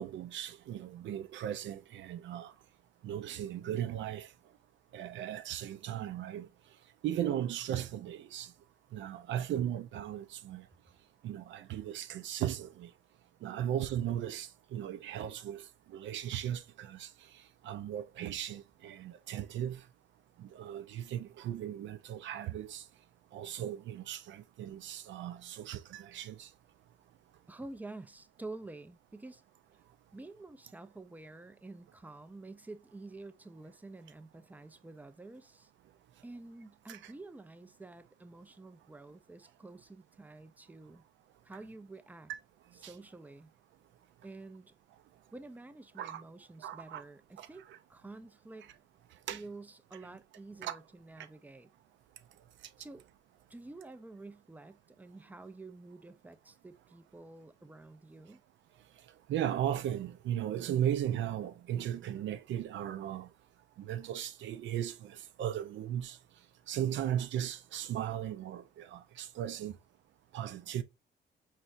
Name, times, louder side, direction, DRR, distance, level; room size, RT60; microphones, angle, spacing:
voice 1, 0.0-2.5 3.0-4.3 4.9-6.5 7.0-8.5 8.9-10.7 11.2-12.9 13.4-19.8 20.4-22.8 23.3-26.5 36.9-37.1 42.8-42.9 46.0-46.2 46.6-47.0 47.4-47.8 49.3-49.4 50.6-50.8 59.3-63.3 63.8-66.2 66.7-69.8 70.3-70.8, right 10 dB, 70° right, 0.5 m, -37 dB
voice 2, 27.5-29.4 30.1-35.7 36.2-41.0 41.4-42.3 42.7-43.5 44.2-44.7 45.3-47.6 47.9-48.7 49.3-51.7 52.8-53.0 53.5-58.4, right 2 dB, 10° right, 0.4 m, -49 dB
4.5 x 3.2 x 2.5 m
cardioid pair, 90°, 20 cm